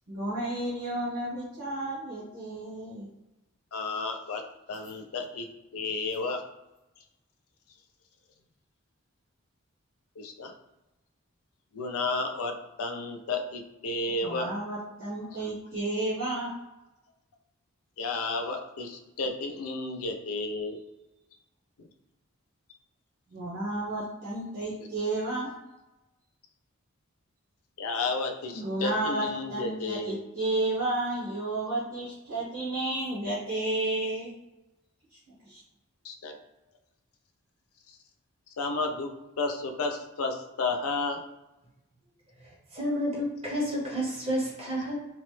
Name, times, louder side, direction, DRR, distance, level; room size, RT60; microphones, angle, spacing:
voice 1, 0.1-3.1 14.2-16.5 23.3-25.5 28.5-34.3 35.1-35.6, right 2 dB, 60° right, -8 dB, 0.9 m, -32 dB
voice 2, 3.7-4.4 4.7-5.5 5.7-6.4 10.2-10.5 11.7-14.5 18.0-20.8 21.8-21.9 27.8-30.2 36.0-36.3 38.6-39.1 39.4-41.2, left 3 dB, 75° left, 3 dB, 0.4 m, -32 dB
voice 3, 42.4-44.9, equal, 25° right, -4 dB, 0.7 m, -30 dB
2.9 x 2.0 x 3.1 m, 0.99 s
head